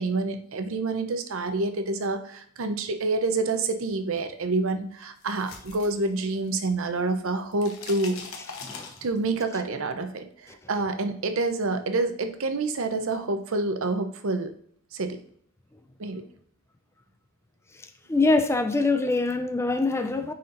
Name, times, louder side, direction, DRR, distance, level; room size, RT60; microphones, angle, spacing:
voice 1, 0.0-8.2 9.0-14.5 14.9-15.2 16.0-16.2, right 3 dB, 65° right, 0.7 m, -28 dB
sound 1, 5.0-6.7 7.0-9.4, left 4 dB, 65° left, 1.0 m, -42 dB
voice 2, 18.1-20.3, left 3 dB, 10° left, 0.3 m, -24 dB
9.2 x 4.3 x 2.5 m
head